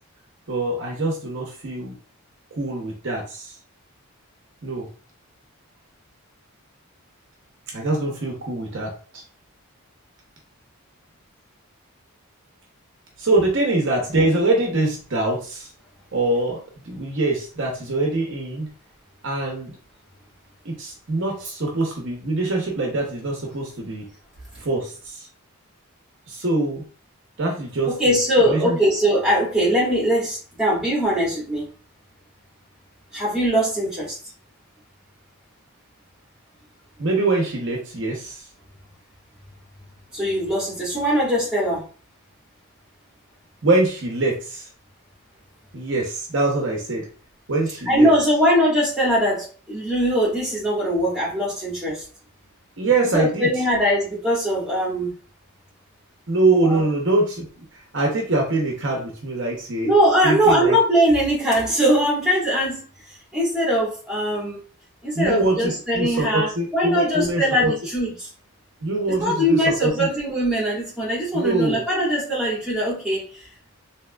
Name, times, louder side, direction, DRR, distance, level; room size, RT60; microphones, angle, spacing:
voice 1, 0.5-1.9 2.6-3.5 4.6-4.9 7.7-9.2 13.2-15.7 16.1-16.6 16.8-18.7 19.2-19.7 20.6-24.1 24.6-25.3 26.3-26.8 27.4-28.1 28.4-28.8 37.0-38.4 43.6-44.6 45.7-47.1 47.5-48.1 52.8-53.5 56.3-57.5 57.9-59.9 60.2-60.8 65.1-67.7 68.8-70.1 71.3-71.8, right 2 dB, 55° right, 0 dB, 0.7 m, -23 dB
voice 2, 27.9-31.7 33.1-34.2 40.1-41.8 47.8-52.0 53.1-55.1 56.6-56.8 59.8-62.9 63.3-64.6 65.0-68.3 69.1-73.4, equal, 5° right, -7 dB, 1.5 m, -21 dB
3.5 x 2.8 x 2.2 m, 0.39 s
head